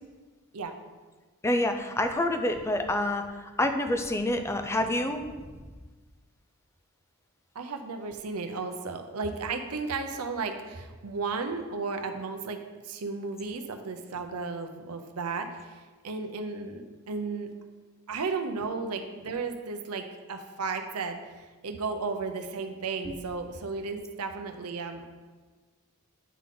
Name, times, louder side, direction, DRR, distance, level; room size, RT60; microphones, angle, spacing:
voice 1, 1.4-5.2 23.1-23.2, left 1 dB, 10° left, 6 dB, 0.4 m, -27 dB
voice 2, 7.5-12.6 12.8-17.5 18.1-25.1, right 4 dB, 85° right, 5 dB, 0.6 m, -34 dB
9.3 x 3.7 x 3.8 m, 1.4 s
head